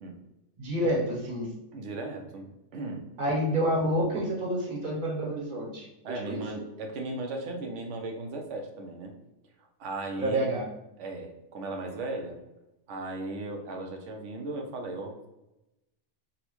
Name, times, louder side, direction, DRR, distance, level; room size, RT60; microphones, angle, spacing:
voice 1, 0.6-1.5 3.2-5.9 6.3-6.6 10.2-10.7, equal, 50° right, -2 dB, 0.9 m, -28 dB
voice 2, 1.7-3.4 6.0-9.1 9.8-10.5 11.0-12.4 12.9-15.3, right 2 dB, 85° right, 3 dB, 0.9 m, -37 dB
3.9 x 2.1 x 3.0 m, 0.94 s
omnidirectional pair, 1.2 m